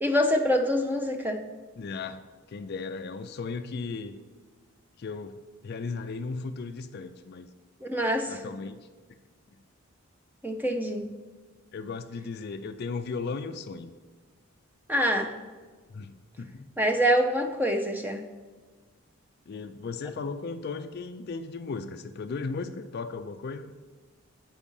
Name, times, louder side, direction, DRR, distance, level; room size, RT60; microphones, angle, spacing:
voice 1, 0.0-1.4 7.8-8.4 10.4-11.1 14.9-15.3 16.8-18.2, equal, 10° right, 4 dB, 0.5 m, -25 dB
voice 2, 1.8-2.2 2.5-4.2 5.0-5.4 5.6-7.5 8.3-8.8 11.7-13.9 15.9-16.7 19.5-23.7, left 4 dB, 45° left, 10 dB, 0.3 m, -36 dB
8.4 x 5.3 x 5.4 m, 1.4 s
head